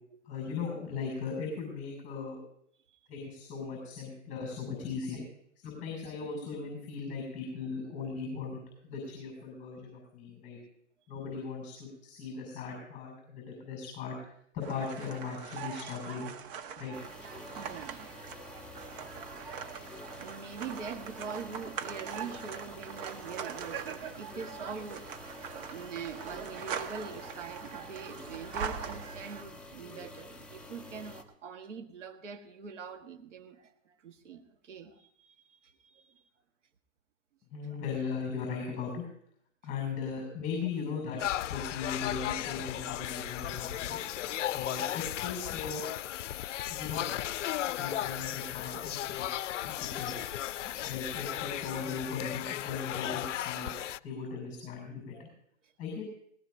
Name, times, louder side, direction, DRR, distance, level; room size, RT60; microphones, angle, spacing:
voice 1, 0.3-2.4 3.1-5.2 5.6-10.6 11.1-14.2 14.5-16.3 16.8-17.0 37.5-39.0 39.6-44.0 44.5-45.8 46.7-47.1 47.7-49.3 49.6-50.1 50.8-53.8 54.0-55.3 55.8-56.0, left 5 dB, 25° left, 1 dB, 6.8 m, -38 dB
sound 1, 14.6-29.4, right 7 dB, 45° right, 1.4 m, -42 dB
sound 2, 16.9-31.2, left 2 dB, 5° left, 1.0 m, -49 dB
voice 2, 17.6-18.5 18.8-18.9 19.3-25.3 25.5-36.2 44.0-44.1 50.3-50.8 55.1-55.3, right 5 dB, 85° right, 6 dB, 1.7 m, -44 dB
sound 3, 41.2-54.0, left 13 dB, 80° left, 0.5 m, -35 dB
20.0 x 19.0 x 2.7 m, 0.67 s
hypercardioid pair, 130°, 36 cm